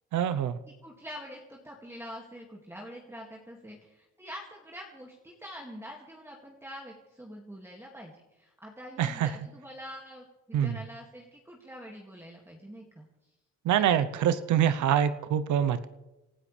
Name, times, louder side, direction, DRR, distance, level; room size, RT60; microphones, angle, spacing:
voice 1, 0.1-0.6 9.0-9.3 10.5-10.8 13.6-15.9, right 9 dB, 75° right, 13 dB, 0.9 m, -25 dB
voice 2, 0.8-13.1 14.2-14.3, equal, 10° right, -1 dB, 2.3 m, -45 dB
28.5 x 13.0 x 3.4 m, 1.0 s
cardioid pair, 90°, 30 cm